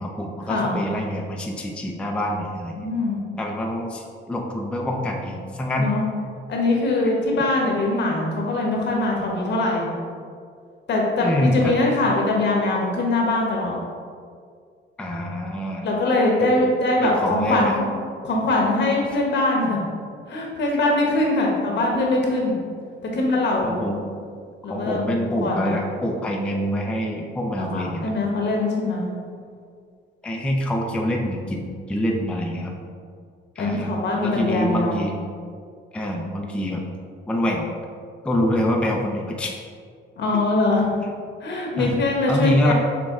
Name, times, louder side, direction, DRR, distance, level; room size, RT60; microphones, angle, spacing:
voice 1, 0.0-2.8 3.4-5.9 11.2-11.7 15.0-15.9 16.4-16.5 17.0-17.8 23.2-23.3 23.6-24.1 24.7-28.1 30.2-32.7 33.6-33.9 34.2-35.1 35.9-36.8 37.3-37.7 38.2-39.6 41.8-41.9 42.3-42.7, left 1 dB, 5° left, 0 dB, 0.4 m, -25 dB
voice 2, 2.7-3.2 5.8-6.0 6.5-9.9 10.9-13.8 15.8-17.9 18.2-19.8 20.3-22.6 23.1-23.7 24.6-25.0 25.4-25.8 27.6-29.1 32.6-32.8 33.6-35.0 40.2-40.9 41.4-42.7, left 2 dB, 60° left, -1 dB, 1.0 m, -22 dB
6.1 x 2.2 x 3.6 m, 2.2 s
cardioid pair, 90°, 20 cm